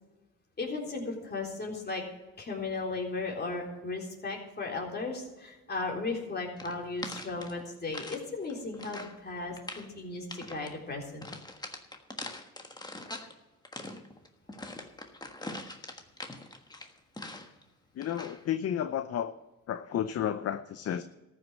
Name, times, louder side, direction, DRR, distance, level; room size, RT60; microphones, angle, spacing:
voice 1, 0.6-2.0 2.4-11.2, left 3 dB, 35° left, 0 dB, 3.7 m, -36 dB
sound 1, 6.6-8.2 8.5-9.2 9.5-9.9 10.3-10.7 11.2-13.3 13.6-17.6 18.0-18.4, left 2 dB, 15° left, 1.4 m, -43 dB
voice 2, 18.0-19.3 19.7-21.0, left 10 dB, 55° left, 12 dB, 0.6 m, -32 dB
14.0 x 6.4 x 8.9 m, 1.1 s
cardioid pair, 90°, 30 cm